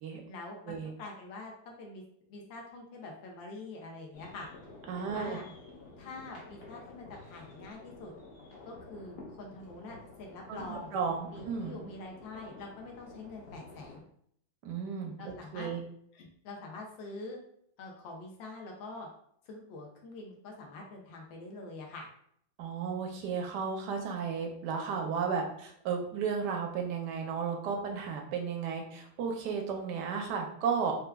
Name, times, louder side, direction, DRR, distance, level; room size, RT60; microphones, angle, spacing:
voice 1, 0.2-2.0 2.3-4.5 5.0-5.4 6.0-8.1 8.6-10.9 11.3-14.0 15.2-15.7 16.1-17.4 17.8-19.1 19.4-22.1, left 2 dB, 80° left, 0 dB, 1.3 m, -45 dB
sound 1, 4.1-14.0, left 3 dB, 65° left, 0.6 m, -51 dB
voice 2, 4.9-5.4 10.5-11.7 14.6-15.8 22.6-31.0, right 6 dB, 75° right, 2 dB, 1.1 m, -34 dB
4.4 x 2.3 x 2.2 m, 0.67 s
omnidirectional pair, 2.1 m